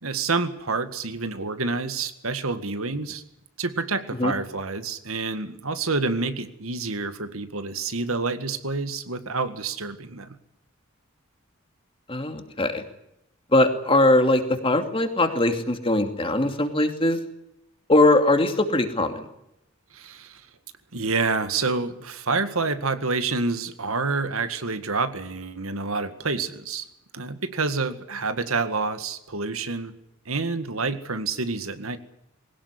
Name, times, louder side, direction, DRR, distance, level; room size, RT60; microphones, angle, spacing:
voice 1, 0.0-3.2 3.6-10.4 19.9-20.4 20.9-26.9 27.1-29.9 30.3-32.0, right 3 dB, 80° right, 10 dB, 1.9 m, -28 dB
voice 2, 12.1-12.8 13.5-17.2 17.9-19.2, left 2 dB, 25° left, 6 dB, 2.5 m, -21 dB
21.5 x 18.0 x 9.8 m, 0.82 s
head